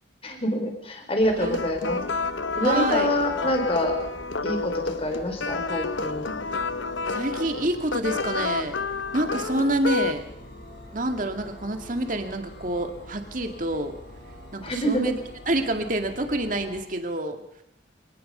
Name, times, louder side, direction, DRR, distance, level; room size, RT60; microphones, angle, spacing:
voice 1, 0.2-2.0 2.6-3.9 4.4-6.3 14.6-15.1, equal, 30° left, 4 dB, 4.3 m, -26 dB
sound 1, 1.2-16.8, left 1 dB, 60° left, 5.1 m, -44 dB
voice 2, 1.3-1.6 2.6-3.1 7.1-8.8 9.1-10.3 10.9-13.9 14.5-15.2 15.5-17.4, right 1 dB, 45° right, 5 dB, 2.1 m, -27 dB
sound 2, 1.4-10.1, left 3 dB, 85° left, 0.9 m, -29 dB
25.0 x 19.0 x 5.6 m, 0.79 s
head